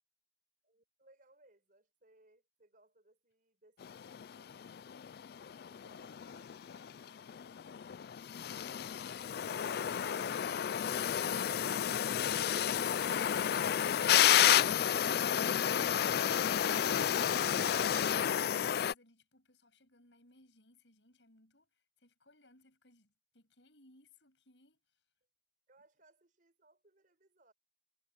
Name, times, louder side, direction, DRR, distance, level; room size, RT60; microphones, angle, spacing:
voice 1, 0.6-4.8 5.6-6.8 25.7-27.5, right 2 dB, 50° right, 5.3 m, -67 dB
sound 1, 3.8-18.9, left 9 dB, 60° left, 0.3 m, -31 dB
voice 2, 5.7-6.3 18.7-25.0, left 2 dB, 80° left, 7.8 m, -65 dB
head